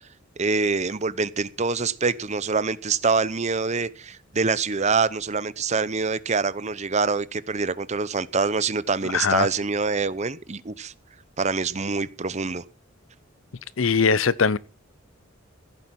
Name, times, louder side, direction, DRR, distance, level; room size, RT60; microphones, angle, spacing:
voice 1, 0.4-10.9 11.4-12.6, right 4 dB, 35° right, 0.8 m, -25 dB
voice 2, 9.1-9.5 13.8-14.6, left 5 dB, 85° left, 0.7 m, -20 dB
15.5 x 8.5 x 6.0 m
head